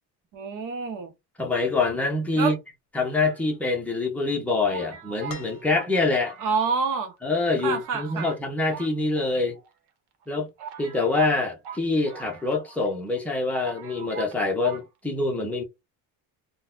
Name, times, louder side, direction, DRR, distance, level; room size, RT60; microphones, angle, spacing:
voice 1, 0.3-1.1 2.4-2.5 6.4-7.1 7.6-8.3, right 5 dB, 50° right, 0.8 m, -27 dB
voice 2, 1.4-2.6 2.9-6.4 7.2-9.6 10.3-10.5 10.8-15.6, left 3 dB, 5° left, 0.7 m, -25 dB
sound 1, 3.2-4.0 4.7-7.0 7.2-7.3 7.6-8.4 8.7-9.7 10.2-10.3 10.6-12.9 13.2-13.3 13.5-14.4 14.6-14.9, right 7 dB, 85° right, 0.9 m, -42 dB
sound 2, 5.3-6.3 7.8-7.9, left 5 dB, 45° left, 0.8 m, -44 dB
3.8 x 2.2 x 2.4 m
cardioid pair, 165°, 40 cm